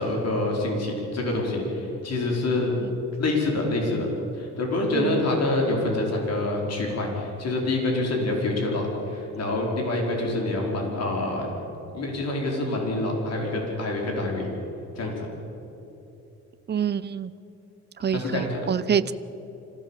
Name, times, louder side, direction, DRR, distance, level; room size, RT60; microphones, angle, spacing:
voice 1, 0.0-2.7 3.2-4.1 4.4-11.5 11.9-14.5 15.0-15.3 18.1-18.6, left 2 dB, 55° left, 0 dB, 5.2 m, -26 dB
voice 2, 4.9-5.4 16.7-17.3 18.0-19.1, right 8 dB, 35° right, 14 dB, 0.7 m, -27 dB
26.0 x 16.5 x 7.4 m, 3.0 s
cardioid pair, 90°, 30 cm